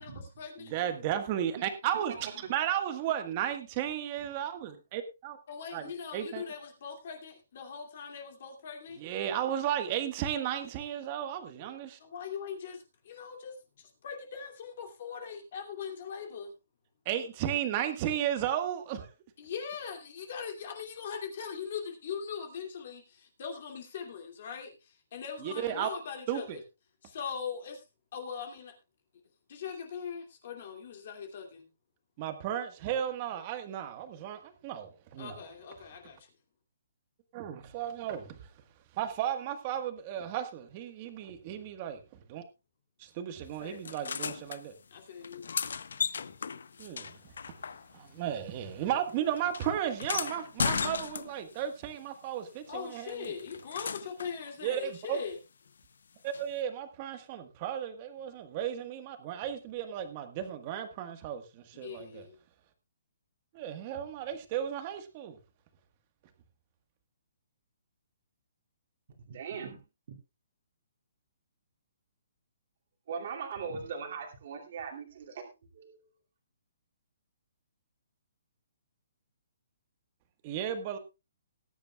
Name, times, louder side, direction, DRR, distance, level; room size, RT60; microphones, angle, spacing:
voice 1, 0.0-1.0 1.8-2.1 2.3-2.4 5.5-9.0 12.0-16.5 19.4-26.6 27.0-27.8 28.1-28.7 29.5-31.7 35.2-36.3 43.6-43.9 44.9-45.5 52.7-55.4 61.8-62.4, left 6 dB, 40° left, 2.5 m, -41 dB
voice 2, 0.7-5.4 5.7-5.8 6.1-6.4 9.0-12.0 17.0-19.1 25.4-25.9 26.3-26.6 32.2-35.4 37.3-38.4 39.0-42.0 42.3-42.4 43.0-44.7 46.8-47.1 47.9-53.3 54.6-55.2 56.2-61.4 61.8-62.2 63.5-65.4 80.4-81.0, right 10 dB, 25° right, 1.4 m, -34 dB
sound 1, 43.8-44.6 45.2-48.2 48.4-51.6 53.1-54.4 56.3-56.4, left 6 dB, 70° left, 0.7 m, -36 dB
voice 3, 69.2-70.2 73.1-76.1, right 6 dB, 40° right, 2.5 m, -40 dB
20.0 x 10.0 x 2.3 m
hypercardioid pair, 175°, 0 cm